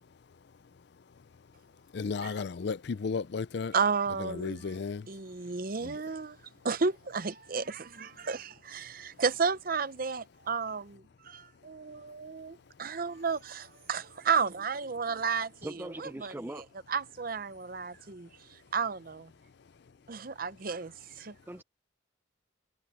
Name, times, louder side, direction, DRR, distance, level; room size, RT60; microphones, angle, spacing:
voice 1, 1.9-3.7 4.2-5.1 5.8-6.0, left 5 dB, 60° left, 0.4 m, -34 dB
voice 2, 3.7-4.6 5.1-6.4 6.6-16.6 16.9-18.3 18.7-19.3 20.1-21.3, right 5 dB, 45° right, 0.7 m, -32 dB
voice 3, 15.6-16.7 21.5-21.6, right 1 dB, 10° right, 0.5 m, -40 dB
head